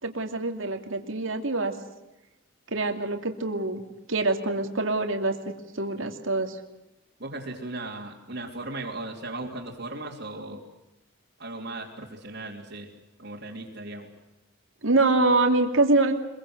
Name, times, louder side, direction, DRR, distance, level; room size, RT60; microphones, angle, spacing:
voice 1, 0.0-1.7 2.7-3.8 4.1-5.3 5.7-6.6 14.8-16.1, right 2 dB, 70° right, 5 dB, 2.7 m, -24 dB
voice 2, 7.2-10.6 11.4-12.9 13.2-14.1, right 2 dB, 55° right, -5 dB, 3.2 m, -37 dB
25.5 x 22.5 x 8.0 m, 0.96 s
head